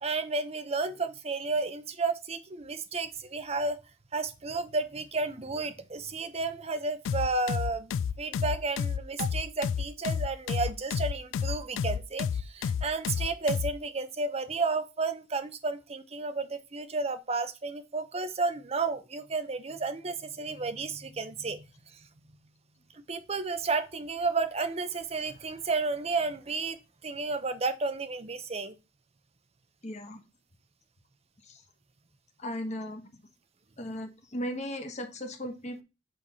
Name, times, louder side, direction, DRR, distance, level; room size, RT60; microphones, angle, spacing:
voice 1, 0.0-3.8 4.1-7.9 8.2-21.7 23.1-28.7, right 3 dB, 35° right, 0.7 m, -32 dB
sound 1, 7.0-13.8, left 7 dB, 80° left, 0.3 m, -30 dB
voice 2, 29.8-30.2 31.4-31.6 32.4-33.1 33.8-35.8, equal, 35° left, 1.1 m, -37 dB
7.7 x 3.4 x 4.1 m
head